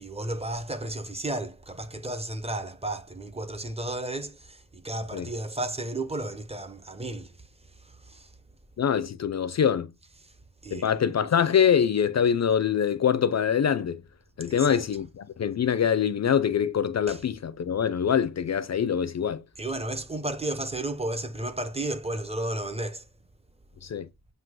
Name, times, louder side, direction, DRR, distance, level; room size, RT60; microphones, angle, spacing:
voice 1, 0.0-8.3 10.2-10.3 10.6-10.9 14.5-14.8 17.1-17.2 19.6-23.1, right 1 dB, 15° right, 0.7 m, -33 dB
voice 2, 8.8-9.9 10.7-14.0 14.4-19.4 23.8-24.1, left 8 dB, 45° left, 0.5 m, -24 dB
7.6 x 2.8 x 6.1 m
wide cardioid pair, 180°, 37 cm